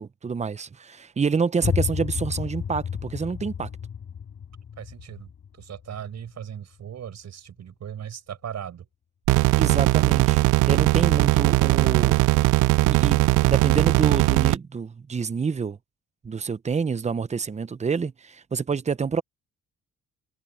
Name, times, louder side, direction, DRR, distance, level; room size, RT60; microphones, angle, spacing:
voice 1, 0.0-3.7 9.6-10.4 10.7-12.2 12.8-15.8 16.2-19.2, right 5 dB, 25° right, 0.7 m, -27 dB
sound 1, 1.6-7.2, left 7 dB, 50° left, 4.6 m, -32 dB
voice 2, 4.8-8.9, right 9 dB, 60° right, 7.2 m, -38 dB
sound 2, 9.3-14.6, right 19 dB, 90° right, 0.5 m, -19 dB
cardioid pair, 90°, 30 cm